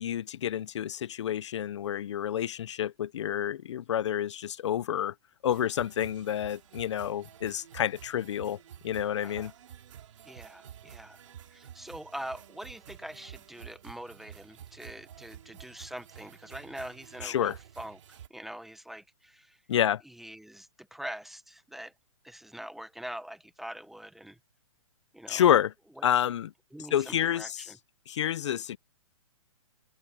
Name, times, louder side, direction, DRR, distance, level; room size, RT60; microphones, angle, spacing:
voice 1, 0.0-5.1 5.4-8.6 8.8-9.5 17.2-17.5 19.7-20.0 25.3-25.7 26.0-26.5 26.9-27.6 28.1-28.8, left 10 dB, 55° left, 0.6 m, -28 dB
sound 1, 5.5-18.3, right 10 dB, 60° right, 2.9 m, -50 dB
voice 2, 9.2-9.5 10.2-11.2 11.5-19.6 20.0-21.9 22.2-24.4 25.1-25.5 26.0-26.1 26.7-27.8, equal, ahead, 0.7 m, -44 dB
open air
hypercardioid pair, 160°, 17 cm